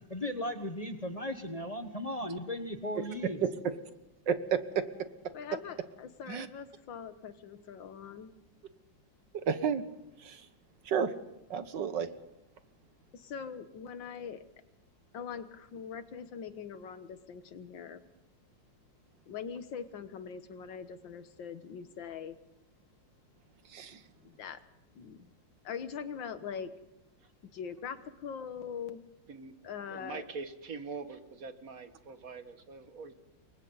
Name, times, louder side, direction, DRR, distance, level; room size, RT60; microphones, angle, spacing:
voice 1, 0.1-3.4, left 1 dB, 25° left, 6 dB, 1.1 m, -36 dB
voice 2, 4.3-4.6 6.3-6.5 9.3-9.8 10.2-10.4 10.8-11.1 11.5-12.1 23.7-24.0, right 7 dB, 70° right, 10 dB, 1.8 m, -31 dB
voice 3, 5.3-8.3 13.1-14.4 15.1-18.0 19.3-22.4 24.2-24.6 24.9-25.3 25.6-26.7 27.4-29.0 29.6-30.2, left 7 dB, 80° left, 11 dB, 1.9 m, -42 dB
voice 4, 29.3-29.6 29.9-33.1, right 4 dB, 50° right, 9 dB, 1.6 m, -43 dB
28.5 x 23.0 x 4.0 m, 0.90 s
omnidirectional pair, 2.0 m